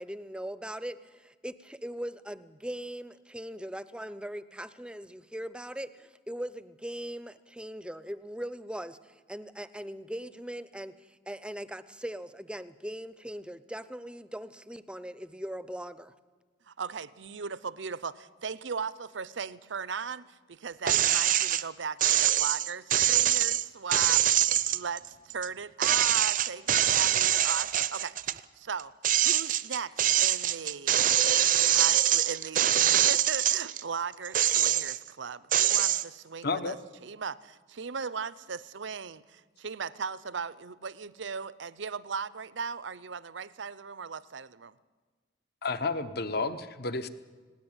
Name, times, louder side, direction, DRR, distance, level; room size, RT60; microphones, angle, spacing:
voice 1, 0.0-16.1, equal, 5° right, 14 dB, 0.6 m, -40 dB
voice 2, 16.7-24.2 24.7-25.0 25.3-28.9 29.2-31.0 31.6-36.8 37.0-44.8, right 5 dB, 80° right, 18 dB, 0.7 m, -37 dB
sound 1, 20.9-21.6 22.0-25.5 25.8-28.4 28.8-33.8 34.2-35.1 35.5-36.0, right 12 dB, 45° right, 0.6 m, -24 dB
voice 3, 36.4-36.8 45.6-47.1, left 3 dB, 55° left, 12 dB, 1.0 m, -31 dB
20.0 x 17.5 x 8.9 m, 1.4 s
head